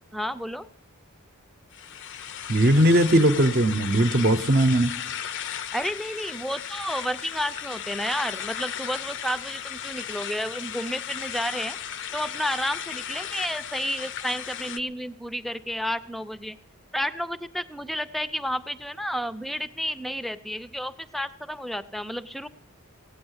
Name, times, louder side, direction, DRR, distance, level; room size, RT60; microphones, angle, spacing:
voice 1, 0.1-0.7 5.7-11.8 12.1-16.6 16.9-22.5, equal, ahead, 14 dB, 0.5 m, -31 dB
sound 1, 1.7-14.8, left 9 dB, 55° left, 0.6 m, -35 dB
voice 2, 2.5-4.9, right 1 dB, 45° right, 8 dB, 0.8 m, -19 dB
17.0 x 9.0 x 8.0 m, 0.68 s
head